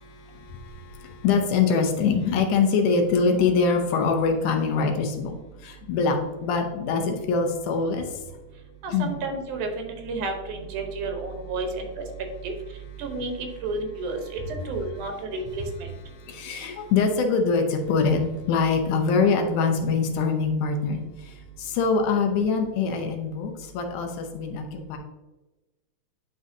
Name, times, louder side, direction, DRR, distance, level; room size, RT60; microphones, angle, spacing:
voice 1, 0.0-5.3 5.6-8.2 8.9-9.1 16.1-18.2 18.5-25.0, left 5 dB, 85° left, 4 dB, 2.4 m, -24 dB
voice 2, 8.8-11.7 12.4-12.5 13.0-13.3 13.6-14.2 14.7-15.6, right 3 dB, 85° right, 4 dB, 2.5 m, -31 dB
10.0 x 3.9 x 2.7 m, 1.1 s
omnidirectional pair, 3.5 m